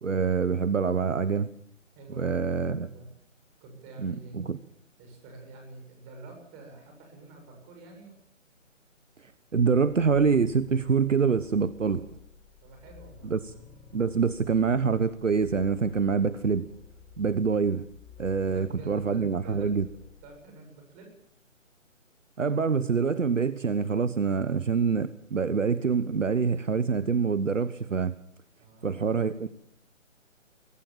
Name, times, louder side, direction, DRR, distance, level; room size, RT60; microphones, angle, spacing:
voice 1, 0.0-1.5 2.2-2.9 4.0-4.6 9.2-12.0 13.2-13.4 13.9-16.7 17.2-17.8 18.2-19.9 22.4-28.1 28.8-29.5, right 5 dB, 70° right, 15 dB, 1.2 m, -25 dB
voice 2, 2.0-3.1 3.6-4.4 5.0-8.2 11.7-12.1 12.6-13.3 18.4-19.7 20.2-21.1 28.6-29.3, right 3 dB, 20° right, 3 dB, 7.6 m, -48 dB
sound 1, 9.7-20.4, left 6 dB, 15° left, 3.9 m, -52 dB
24.0 x 16.5 x 7.4 m, 0.70 s
figure-of-eight pair, 145°, 39 cm